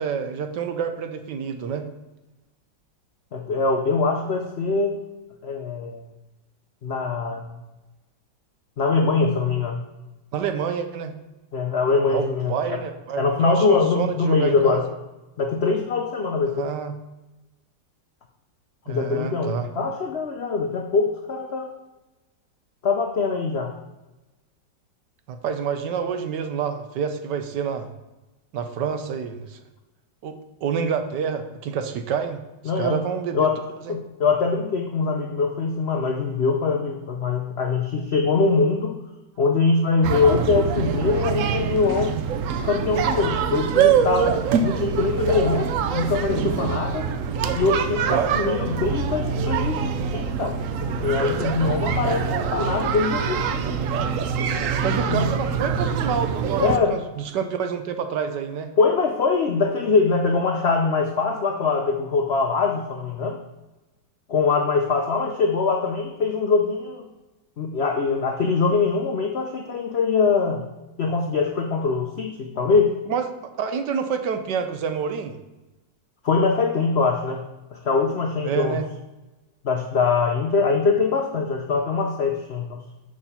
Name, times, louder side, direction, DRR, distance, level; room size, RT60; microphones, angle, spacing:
voice 1, 0.0-1.8 10.3-11.1 12.1-14.8 16.6-16.9 18.9-19.7 25.3-27.9 28.5-29.6 30.2-32.4 32.8-33.5 33.8-34.0 48.1-48.7 54.8-58.7 73.1-75.4 78.4-78.9, right 7 dB, 70° right, 7 dB, 1.3 m, -28 dB
voice 2, 3.3-5.0 5.4-6.0 6.8-7.5 8.8-9.8 11.5-12.8 13.2-14.9 15.4-16.6 18.9-21.7 22.8-23.7 32.7-33.0 33.3-33.6 33.9-39.0 39.4-42.1 42.6-47.1 47.6-49.8 50.1-50.6 51.0-53.6 55.1-55.3 56.6-56.9 58.8-63.4 64.3-67.0 67.6-70.6 71.0-72.9 76.2-77.4 77.7-78.8 79.6-82.8, left 4 dB, 80° left, 3 dB, 0.5 m, -23 dB
sound 1, 40.0-56.8, right 7 dB, 90° right, 0.7 m, -24 dB
6.6 x 6.0 x 5.6 m, 1.1 s
omnidirectional pair, 2.0 m